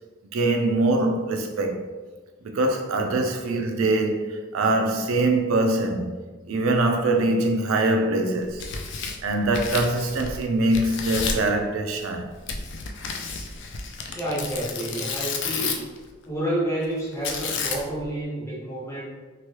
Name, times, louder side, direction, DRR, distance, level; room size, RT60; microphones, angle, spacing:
voice 1, 0.3-1.8 2.4-6.1 6.5-8.6 9.2-12.3, right 2 dB, 85° right, 0.4 m, -23 dB
Tearing, 8.4-10.4 10.7-11.5 12.5-16.0 17.2-18.0, left 5 dB, 60° left, 0.3 m, -31 dB
voice 2, 14.1-15.9 16.3-19.1, right 1 dB, 15° left, 0.8 m, -29 dB
3.1 x 2.2 x 2.9 m
head